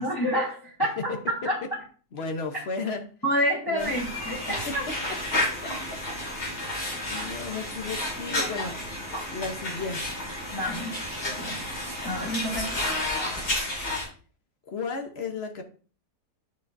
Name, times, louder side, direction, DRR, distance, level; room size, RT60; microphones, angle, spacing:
voice 1, 0.0-1.6 3.2-4.8 8.0-8.5 10.5-11.0 11.4-11.6 12.0-12.8, equal, 15° left, 1.2 m, -29 dB
voice 2, 1.0-1.7 2.1-3.0 3.7-3.9 4.7-4.8 5.6-6.0 6.5-8.8 9.3-10.2 14.7-15.6, left 4 dB, 45° left, 1.0 m, -34 dB
sound 1, 3.8-14.1, left 1 dB, 80° left, 2.9 m, -31 dB
9.6 x 5.2 x 2.6 m
omnidirectional pair, 1.7 m